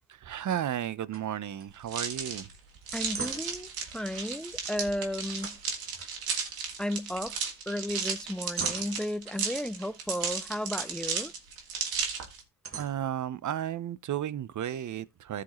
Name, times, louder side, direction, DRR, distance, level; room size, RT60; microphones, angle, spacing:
voice 1, 0.1-2.5 12.8-15.4, right 10 dB, 55° right, 0.8 m, -33 dB
sound 1, 1.1-1.3 1.6-1.7 2.1-2.4 2.8-3.7 5.4-6.8 7.1-7.6 8.0-9.4 10.5-11.3 11.9-12.0 12.6-13.7, right 5 dB, 40° right, 1.8 m, -43 dB
sound 2, 1.9-12.4, right 6 dB, 85° right, 2.4 m, -34 dB
voice 2, 2.9-5.6 6.8-7.4 7.7-11.3, equal, ahead, 0.5 m, -34 dB
15.0 x 5.0 x 3.1 m
cardioid pair, 80°, 35 cm